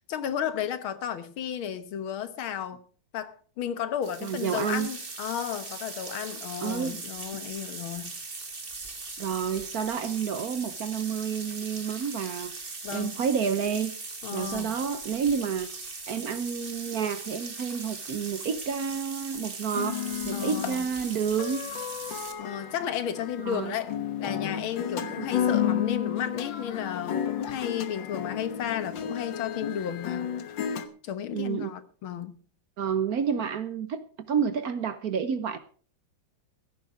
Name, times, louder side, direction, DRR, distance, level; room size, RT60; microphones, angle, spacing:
voice 1, 0.1-2.8 3.1-8.1 12.8-13.2 14.2-14.8 20.3-20.9 22.4-23.9 24.2-30.3 31.0-32.4, left 9 dB, 85° left, 11 dB, 2.0 m, -33 dB
sound 1, 4.0-22.3, right 3 dB, 30° right, 1.8 m, -40 dB
voice 2, 4.2-4.9 6.6-7.0 9.2-13.9 14.3-15.7 16.1-21.6 23.4-23.8 25.0-25.3 31.3-31.7 32.8-35.6, right 7 dB, 60° right, 12 dB, 1.1 m, -30 dB
sound 2, 19.7-30.9, left 9 dB, 65° left, 1.8 m, -32 dB
16.5 x 9.6 x 4.9 m, 0.43 s
omnidirectional pair, 2.2 m